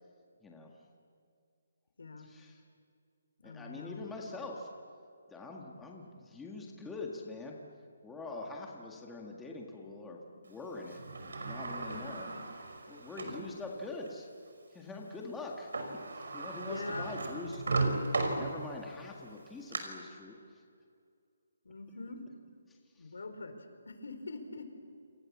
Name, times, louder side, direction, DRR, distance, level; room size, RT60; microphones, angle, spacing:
voice 1, 0.4-0.8 2.2-2.6 3.4-4.7 5.3-7.6 8.0-12.3 12.9-14.3 14.7-20.6 22.7-23.1, left 3 dB, 5° left, -1 dB, 1.8 m, -44 dB
voice 2, 2.0-2.3 3.4-4.1 11.9-12.0 13.2-13.3 16.6-17.1 21.6-22.2 23.0-24.8, left 3 dB, 85° left, 7 dB, 4.8 m, -43 dB
Sliding door, 10.9-13.5 14.1-14.2 15.5-15.6 15.7-18.9 19.4-19.8, right 3 dB, 80° right, 5.6 m, -36 dB
28.5 x 27.0 x 7.4 m, 2.3 s
hypercardioid pair, 175°, 0 cm